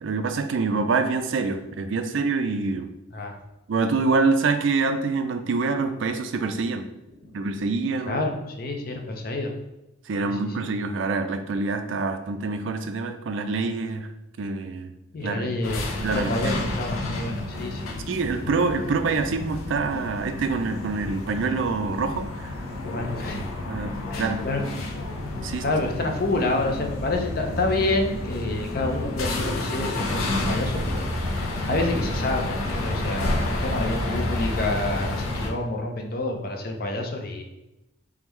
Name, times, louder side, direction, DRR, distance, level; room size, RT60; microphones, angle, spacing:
voice 1, 0.0-2.9 3.7-6.9 7.3-8.2 10.1-14.1 14.4-14.9 15.2-15.5 16.0-16.3 18.1-22.5 23.7-24.4 25.4-25.6, right 4 dB, 65° right, 8 dB, 0.4 m, -26 dB
voice 2, 8.1-9.5 10.2-10.7 15.1-17.8 22.9-23.5 24.1-25.0 25.6-31.1 31.7-37.4, left 2 dB, 45° left, 3 dB, 0.5 m, -28 dB
sound 1, 15.6-35.5, left 1 dB, 90° left, 0.7 m, -30 dB
3.6 x 3.4 x 3.1 m, 0.93 s
head